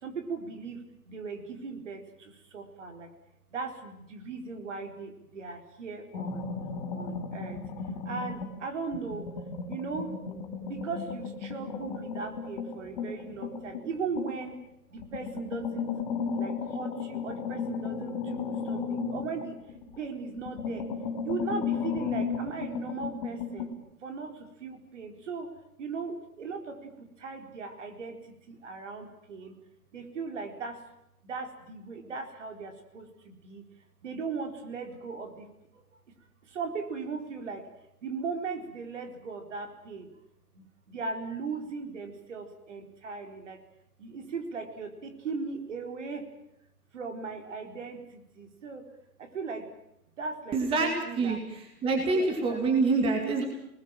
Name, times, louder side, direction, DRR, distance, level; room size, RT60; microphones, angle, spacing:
voice 1, 0.0-3.1 3.5-6.5 6.9-7.6 8.0-9.3 9.7-14.6 14.9-15.9 16.4-19.6 20.0-20.9 21.2-23.7 24.0-25.5 25.8-29.5 29.9-30.8 31.2-33.6 34.0-35.5 35.7-35.8 36.5-37.7 38.0-40.1 40.5-43.6 44.0-46.3 46.9-48.9 49.2-49.7 50.1-51.4 52.1-52.7, right 4 dB, 50° right, 5 dB, 4.6 m, -38 dB
sound 1, 6.1-8.6 8.9-14.5 15.0-20.0 20.4-23.7, left 5 dB, 30° left, 5.7 m, -35 dB
voice 2, 50.5-53.4, right 3 dB, 10° right, 3 dB, 2.4 m, -26 dB
28.0 x 20.5 x 7.6 m, 0.82 s
hypercardioid pair, 145°, 46 cm